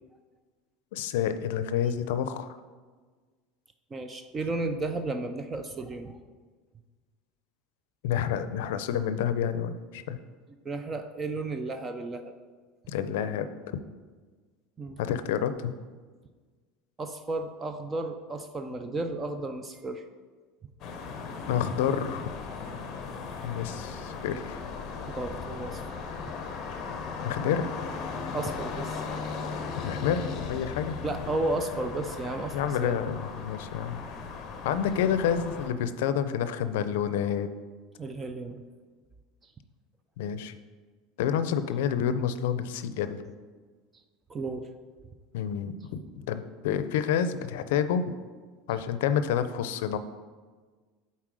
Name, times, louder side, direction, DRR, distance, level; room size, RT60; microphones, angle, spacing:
voice 1, 0.9-2.5 8.0-10.2 12.9-13.5 13.7-13.8 15.0-15.7 21.5-22.3 23.4-24.6 27.2-27.7 29.8-31.1 32.5-34.0 34.6-37.5 40.2-40.6 41.2-43.2 45.3-48.1 48.7-50.0, left 8 dB, 80° left, 12 dB, 0.4 m, -29 dB
voice 2, 3.9-6.2 10.7-12.3 14.8-15.0 17.0-20.0 25.1-25.8 28.3-29.0 31.0-33.0 38.0-38.6 44.3-44.7, right 2 dB, 15° right, 7 dB, 0.3 m, -33 dB
sound 1, 20.8-35.7, left 5 dB, 35° left, 0.8 m, -37 dB
7.4 x 4.2 x 4.8 m, 1.4 s
cardioid pair, 165°, 0 cm